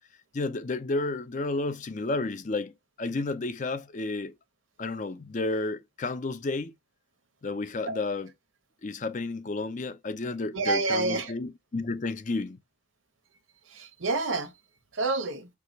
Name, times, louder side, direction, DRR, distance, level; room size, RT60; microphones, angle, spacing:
voice 1, 0.3-4.3 4.8-6.7 7.4-8.3 8.8-12.6, left 3 dB, 40° left, 0.5 m, -31 dB
voice 2, 10.5-11.3 13.7-14.5 14.9-15.5, right 3 dB, 85° right, 1.0 m, -28 dB
4.7 x 2.4 x 3.9 m
head